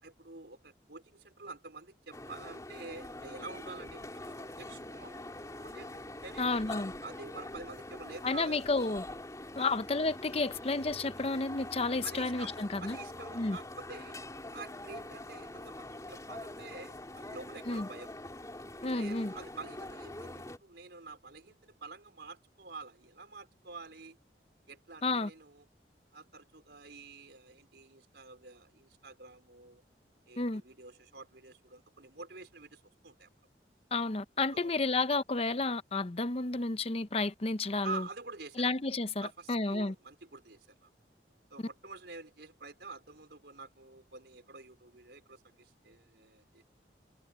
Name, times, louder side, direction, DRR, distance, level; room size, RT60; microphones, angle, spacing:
voice 1, 0.0-6.5 7.0-8.6 9.6-9.8 12.0-12.5 12.8-14.2 14.5-18.1 19.0-24.2 24.7-25.6 26.1-29.8 30.3-33.3 34.5-34.7 37.8-38.7 39.2-40.9 41.5-46.6, right 3 dB, 75° right, 4.3 m, -48 dB
sound 1, 2.1-20.6, left 1 dB, 20° left, 3.2 m, -44 dB
voice 2, 6.4-6.9 8.2-9.0 9.6-13.0 13.3-13.6 17.7-17.9 18.8-19.3 25.0-25.3 30.4-30.6 33.9-38.0 38.6-39.9, left 3 dB, 35° left, 0.7 m, -31 dB
head